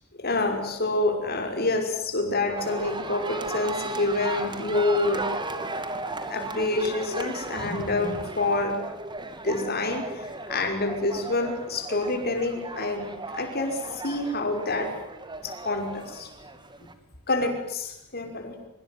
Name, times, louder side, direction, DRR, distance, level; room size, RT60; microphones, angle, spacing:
voice 1, 0.2-5.3 5.5-5.7 6.3-8.8 9.4-15.0 15.4-16.3 17.3-18.7, left 2 dB, 50° left, 5 dB, 5.7 m, -27 dB
sound 1, 2.6-16.9, right 2 dB, 20° right, 2.3 m, -36 dB
25.0 x 23.0 x 9.4 m, 0.84 s
head